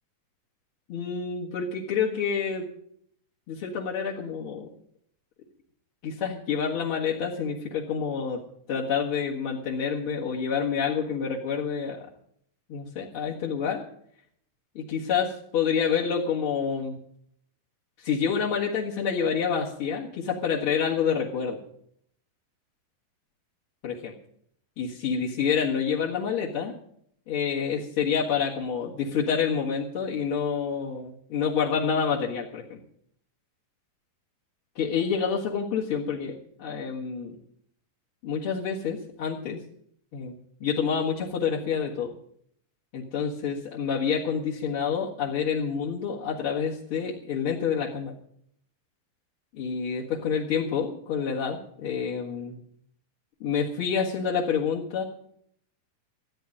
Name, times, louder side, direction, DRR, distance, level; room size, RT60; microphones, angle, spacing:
voice 1, 0.9-2.7 3.5-4.7 6.0-8.4 8.7-12.0 12.7-13.8 14.8-17.0 18.0-21.6 23.8-24.1 24.8-26.7 27.3-32.8 34.8-37.4 38.2-39.6 40.1-42.1 42.9-48.1 49.5-52.6 53.4-55.0, left 6 dB, 50° left, -5 dB, 2.2 m, -28 dB
14.5 x 10.0 x 8.9 m, 0.68 s
omnidirectional pair, 3.9 m